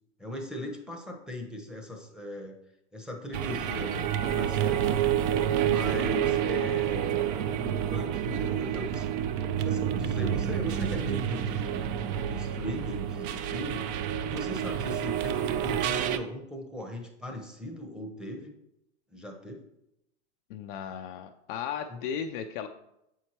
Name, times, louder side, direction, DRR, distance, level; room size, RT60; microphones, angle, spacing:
voice 1, 0.2-2.6 2.9-4.9 5.5-9.1 9.6-11.8 12.2-13.9 14.2-18.5 19.1-19.6 21.9-22.0, equal, ahead, 1 dB, 0.8 m, -39 dB
sound 1, 3.3-16.2, right 9 dB, 30° right, 0.4 m, -29 dB
voice 2, 20.5-22.7, left 8 dB, 45° left, 6 dB, 0.4 m, -35 dB
7.5 x 4.6 x 2.9 m, 0.84 s
hypercardioid pair, 110°, 37 cm